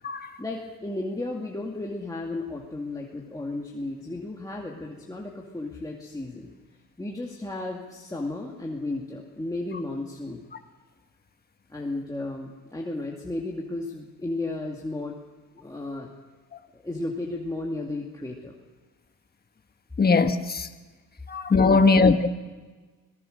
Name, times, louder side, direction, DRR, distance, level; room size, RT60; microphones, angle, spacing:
voice 1, 0.4-6.5 7.0-10.4 11.7-15.2 15.5-16.1 16.7-18.5 21.6-21.9, left 2 dB, 10° left, 2.3 m, -34 dB
voice 2, 20.0-20.7 21.3-22.3, left 4 dB, 25° left, 1.4 m, -19 dB
25.0 x 18.5 x 6.6 m
cardioid pair, 115°, 35 cm